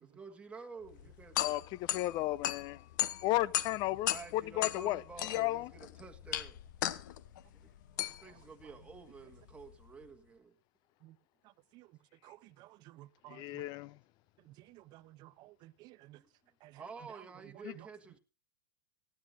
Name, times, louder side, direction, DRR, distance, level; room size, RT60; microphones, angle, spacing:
voice 1, 0.1-1.6 4.1-6.6 7.5-7.7 8.2-10.5 16.2-16.3 16.7-18.2, right 5 dB, 10° right, 1.5 m, -50 dB
sound 1, 0.9-10.0, left 13 dB, 60° left, 1.0 m, -38 dB
voice 2, 1.4-2.8 3.2-5.7 13.3-14.0 17.6-17.7, left 16 dB, 40° left, 0.6 m, -34 dB
voice 3, 12.2-13.6 14.4-16.2 16.6-16.9 17.7-17.9, right 17 dB, 40° right, 0.6 m, -55 dB
18.5 x 13.0 x 2.6 m
hypercardioid pair, 110°, 11 cm